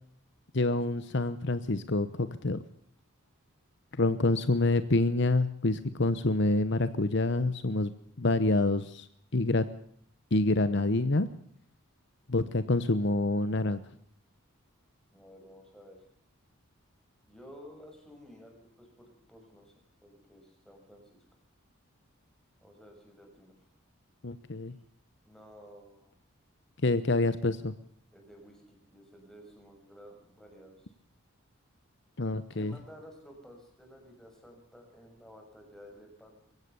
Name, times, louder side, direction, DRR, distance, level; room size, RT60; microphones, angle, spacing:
voice 1, 0.5-2.6 4.0-7.9 8.2-9.1 9.3-9.6 10.3-11.3 12.3-13.8 24.2-24.7 26.8-27.7 32.2-32.7, left 2 dB, 55° left, 13 dB, 0.9 m, -27 dB
voice 2, 15.1-16.0 17.3-19.7 20.0-21.2 22.6-23.7 25.2-26.2 28.1-30.9 32.5-36.5, equal, ahead, 1 dB, 6.4 m, -53 dB
23.0 x 16.5 x 6.9 m, 0.63 s
head